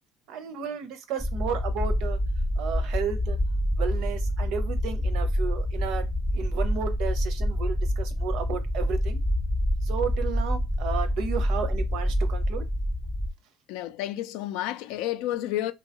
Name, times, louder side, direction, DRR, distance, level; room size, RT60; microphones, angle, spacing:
voice 1, 0.3-2.2 2.6-3.4 3.8-6.1 6.3-9.2 9.8-12.7, right 7 dB, 70° right, 0.6 m, -33 dB
sound 1, 1.2-13.3, equal, ahead, 0.3 m, -27 dB
voice 2, 13.7-15.7, left 13 dB, 80° left, 0.3 m, -30 dB
2.7 x 2.3 x 2.8 m
supercardioid pair, 105°, 0 cm